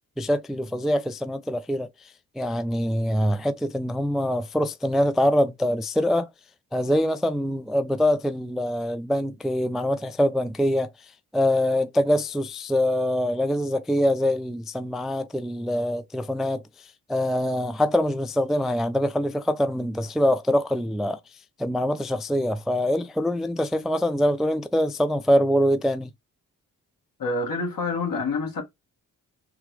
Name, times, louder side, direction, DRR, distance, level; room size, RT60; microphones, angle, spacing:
voice 1, 0.2-1.9 2.4-6.3 6.7-10.9 11.3-16.6 17.1-21.2 21.6-26.1, equal, ahead, 0.3 m, -24 dB
voice 2, 27.2-28.6, left 3 dB, 60° left, 1.7 m, -27 dB
3.6 x 2.3 x 3.1 m
supercardioid pair, 50°, 38 cm